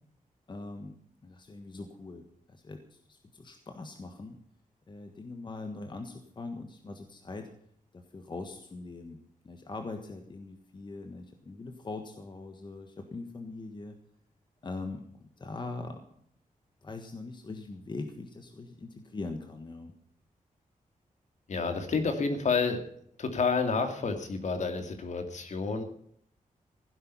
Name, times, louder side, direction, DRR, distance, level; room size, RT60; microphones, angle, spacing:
voice 1, 0.5-1.0 1.2-4.4 4.9-7.5 7.9-9.2 9.4-14.0 14.6-16.1 16.8-19.9, left 3 dB, 35° left, 5 dB, 1.5 m, -42 dB
voice 2, 21.5-22.8 23.2-25.8, left 4 dB, 55° left, 6 dB, 2.4 m, -29 dB
16.0 x 11.0 x 5.6 m, 0.66 s
wide cardioid pair, 175°, 14 cm